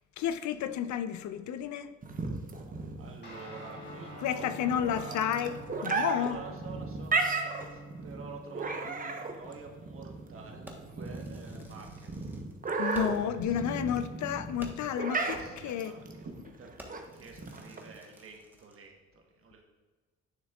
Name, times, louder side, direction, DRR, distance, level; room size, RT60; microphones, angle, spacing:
voice 1, 0.2-1.9 4.2-5.5 5.8-6.4 12.8-16.0, left 9 dB, 70° left, 0.6 m, -31 dB
sound 1, 2.0-18.0, right 3 dB, 30° right, 0.9 m, -35 dB
voice 2, 2.9-5.5 5.8-12.4 13.3-13.8 15.3-16.3 16.6-16.7 17.1-19.6, right 4 dB, 45° right, 1.3 m, -48 dB
Guitar, 3.2-10.9, right 1 dB, 35° left, 2.3 m, -48 dB
Fireworks, 10.7-13.4 13.7-13.8 14.2-14.3 14.6-15.0 15.6-15.8 16.2-16.4 16.8-18.9, right 1 dB, 5° right, 1.2 m, -52 dB
10.0 x 6.2 x 2.4 m
cardioid pair, 90°, 30 cm